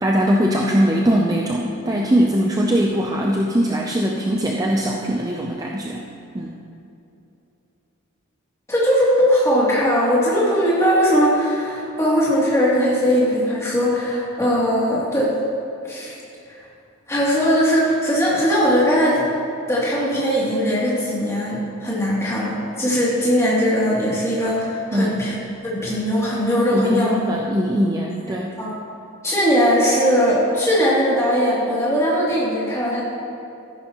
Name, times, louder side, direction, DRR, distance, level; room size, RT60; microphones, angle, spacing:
voice 1, 0.0-6.0 6.3-6.5 24.9-25.2 26.7-28.6, equal, 15° right, -1 dB, 0.5 m, -21 dB
voice 2, 8.7-15.3 15.9-16.2 17.1-19.2 19.7-25.4 25.6-27.1 28.6-28.7 29.2-33.0, equal, 15° left, -8 dB, 2.7 m, -19 dB
13.5 x 11.0 x 3.0 m, 2.7 s
head